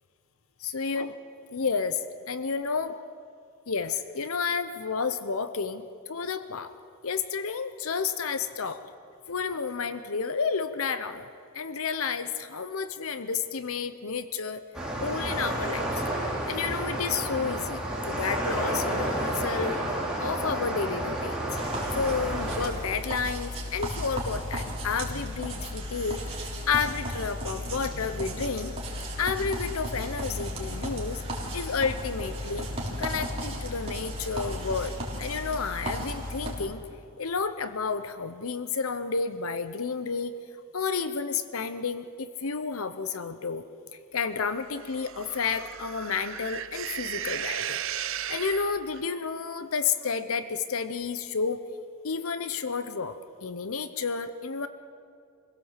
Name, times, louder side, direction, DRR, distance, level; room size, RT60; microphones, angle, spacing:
voice 1, 0.6-1.1 1.5-3.0 3.7-6.7 7.0-8.8 9.3-11.3 11.5-14.6 15.0-16.0 16.5-19.8 20.2-21.4 21.9-28.7 29.2-31.2 31.5-32.7 33.0-34.9 35.2-36.8 37.2-40.3 40.7-43.6 44.1-47.8 48.3-51.6 52.0-54.7, left 5 dB, 75° left, 12 dB, 0.8 m, -31 dB
sound 1, 14.7-22.7, right 1 dB, 5° right, 3.3 m, -30 dB
sound 2, 21.6-36.5, equal, 25° right, 3.5 m, -35 dB
sound 3, 44.7-49.0, right 9 dB, 60° right, 0.7 m, -35 dB
25.0 x 16.5 x 7.4 m, 2.4 s
head